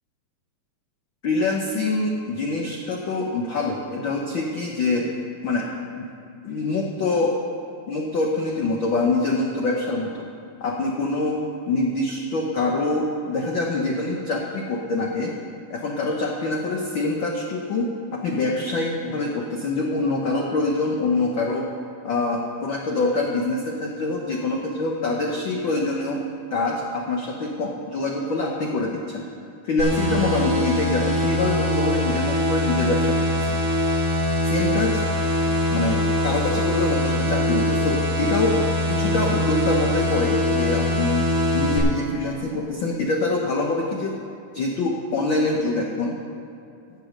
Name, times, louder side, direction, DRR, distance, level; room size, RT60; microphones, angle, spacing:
voice 1, 1.2-5.1 5.4-5.7 5.9-6.1 6.4-7.3 7.9-10.2 10.6-15.3 15.7-21.7 22.0-26.2 26.5-29.2 29.6-33.6 34.4-35.0 35.7-38.6 38.9-41.3 41.5-44.2 44.5-46.2, left 3 dB, 85° left, 0 dB, 1.0 m, -25 dB
sound 1, 29.8-41.8, left 1 dB, 65° right, 4.1 m, -23 dB
15.0 x 7.1 x 6.4 m, 2.6 s
omnidirectional pair, 3.5 m